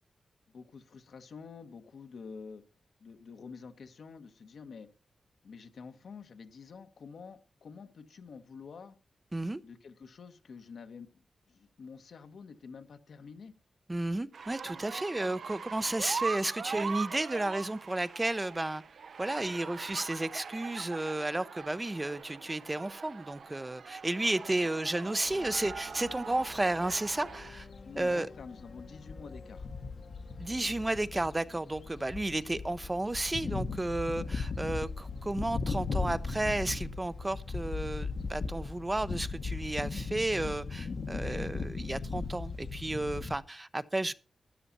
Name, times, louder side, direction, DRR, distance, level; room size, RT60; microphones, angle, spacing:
voice 1, 0.5-2.6 3.0-4.9 5.4-9.0 9.6-13.5 27.8-29.7 34.3-34.4, left 5 dB, 75° left, 1.3 m, -48 dB
voice 2, 13.9-18.8 19.2-27.7 28.0-28.3 30.4-44.1, right 2 dB, 20° right, 0.5 m, -32 dB
sound 1, 14.3-27.5, right 6 dB, 65° right, 0.5 m, -42 dB
sound 2, 25.3-43.4, left 4 dB, 55° left, 1.0 m, -38 dB
12.5 x 11.0 x 4.1 m
wide cardioid pair, 115°, 0 cm